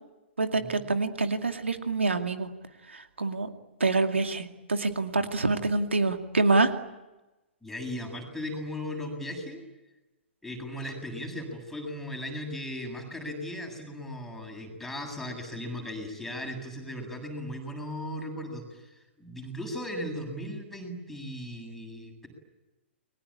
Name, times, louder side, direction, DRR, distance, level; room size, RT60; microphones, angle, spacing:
voice 1, 0.4-2.5 2.9-3.5 3.8-6.7, right 3 dB, 80° right, 6 dB, 2.4 m, -26 dB
voice 2, 7.6-9.6 10.4-22.3, left 1 dB, 5° left, 2 dB, 7.9 m, -37 dB
30.0 x 22.5 x 8.8 m, 1.0 s
figure-of-eight pair, 115°, 7 cm